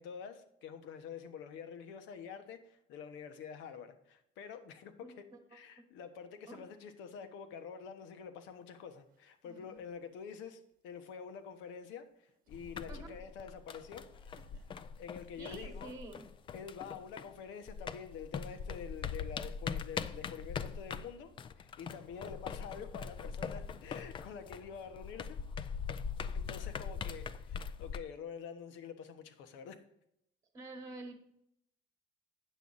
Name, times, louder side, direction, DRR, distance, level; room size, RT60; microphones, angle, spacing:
voice 1, 0.0-14.0 15.0-15.9 16.5-21.3 21.6-25.4 26.3-29.8, left 7 dB, 85° left, 8 dB, 1.1 m, -47 dB
sound 1, 8.8-8.9 9.1-10.0 10.3-10.4 10.8-15.3 15.9-16.9, right 3 dB, 45° right, 0.9 m, -66 dB
sound 2, 12.5-17.4 17.7-28.0, left 6 dB, 25° left, 0.3 m, -42 dB
voice 2, 15.4-16.2 30.5-31.1, right 2 dB, 20° right, 5 dB, 1.2 m, -47 dB
9.1 x 7.4 x 4.0 m, 0.76 s
cardioid pair, 180°, 19 cm